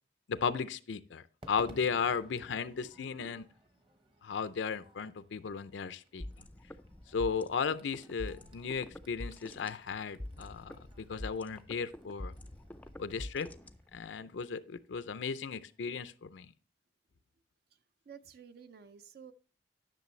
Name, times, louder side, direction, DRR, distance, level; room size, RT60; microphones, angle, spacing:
voice 1, 0.3-3.4 4.2-6.3 7.1-12.3 13.0-13.5 13.9-16.5, left 6 dB, 90° left, 13 dB, 0.5 m, -35 dB
Crowd / Fireworks, 1.4-15.8, equal, 30° right, 0.9 m, -60 dB
sound 1, 6.2-14.2, left 1 dB, 10° left, 0.4 m, -46 dB
voice 2, 18.1-19.3, right 6 dB, 55° right, 11 dB, 0.4 m, -52 dB
10.5 x 6.1 x 3.2 m, 0.40 s
head